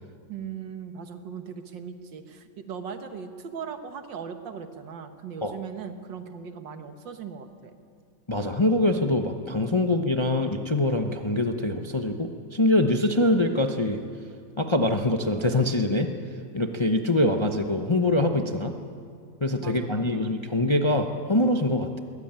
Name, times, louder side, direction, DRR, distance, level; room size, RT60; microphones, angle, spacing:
voice 1, 0.3-7.7 19.6-20.4, right 6 dB, 90° right, 8 dB, 2.0 m, -39 dB
voice 2, 8.3-14.0 14.6-16.1 16.5-18.7 19.4-22.0, left 1 dB, 25° left, 5 dB, 0.6 m, -24 dB
21.5 x 16.0 x 8.9 m, 2.3 s
omnidirectional pair, 1.9 m